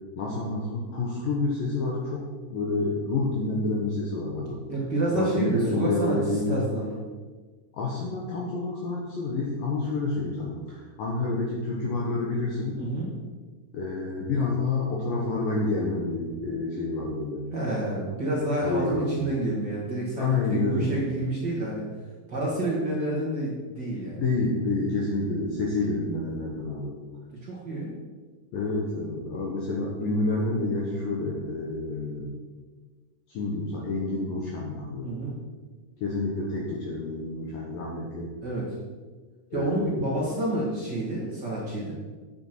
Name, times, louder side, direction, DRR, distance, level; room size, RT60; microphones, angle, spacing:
voice 1, 0.2-4.6 5.2-6.7 7.7-12.8 13.7-17.4 18.6-19.1 20.2-21.1 24.2-27.0 28.5-32.3 33.3-35.1 36.0-38.3 39.5-40.3, left 3 dB, 65° left, -2 dB, 2.4 m, -28 dB
voice 2, 4.7-6.2 6.5-7.0 12.8-13.1 17.5-21.8 22.3-24.2 27.4-27.9 35.0-35.3 38.4-38.7 39.5-41.9, right 1 dB, 60° right, -5 dB, 1.1 m, -29 dB
9.5 x 8.8 x 4.5 m, 1.4 s
omnidirectional pair, 5.1 m